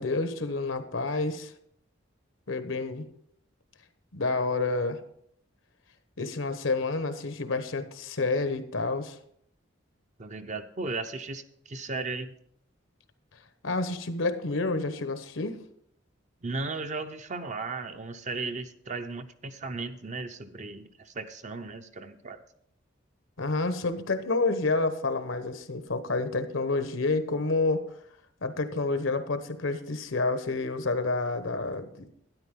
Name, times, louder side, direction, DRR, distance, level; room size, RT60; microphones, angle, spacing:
voice 1, 0.0-1.5 2.5-3.0 4.1-5.0 6.2-9.2 13.6-15.6 23.4-27.8 28.4-32.1, left 3 dB, 80° left, 10 dB, 1.1 m, -29 dB
voice 2, 10.2-12.3 16.4-22.4, right 3 dB, 40° right, 8 dB, 0.7 m, -36 dB
12.5 x 10.0 x 3.7 m, 0.70 s
head